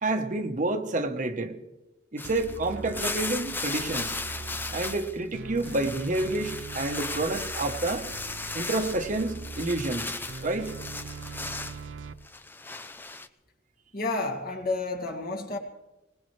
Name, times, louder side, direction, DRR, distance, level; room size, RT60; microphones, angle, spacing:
voice 1, 0.0-1.6 2.1-4.1 4.7-8.0 8.5-10.7, right 2 dB, 40° right, 1.0 m, -29 dB
sound 1, 2.2-5.2 5.4-11.8 12.2-13.3, left 3 dB, 10° left, 0.5 m, -36 dB
sound 2, 2.2-12.1, right 4 dB, 65° right, 0.7 m, -42 dB
voice 2, 13.9-15.6, left 3 dB, 50° left, 2.0 m, -30 dB
21.0 x 19.5 x 3.3 m
head